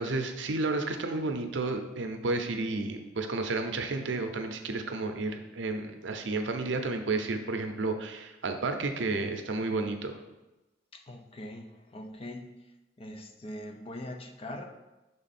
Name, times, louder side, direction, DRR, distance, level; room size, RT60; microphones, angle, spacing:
voice 1, 0.0-10.2, right 3 dB, 75° right, 6 dB, 0.6 m, -31 dB
voice 2, 10.9-12.5 13.0-14.7, left 1 dB, 30° left, 4 dB, 0.6 m, -42 dB
6.2 x 3.6 x 4.2 m, 1.0 s
head